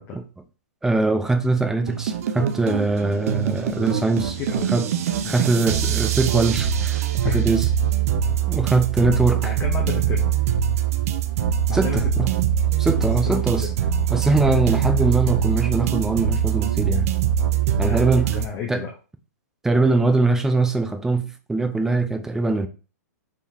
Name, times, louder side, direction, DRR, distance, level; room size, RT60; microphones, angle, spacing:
voice 1, 0.8-4.4 4.7-4.9 5.3-7.7 8.5-9.5 11.7-12.3 12.8-13.7 14.1-17.1 17.8-18.3 18.7-18.8 19.6-22.7, right 3 dB, 5° right, 0.4 m, -22 dB
sound 1, 1.9-18.5, right 9 dB, 55° right, 0.5 m, -23 dB
voice 2, 4.4-4.7 5.2-5.4 7.2-7.4 9.4-10.3 11.7-12.0 13.2-13.8 17.8-18.9, left 7 dB, 25° left, 0.8 m, -31 dB
4.5 x 3.7 x 2.8 m
hypercardioid pair, 140°, 9 cm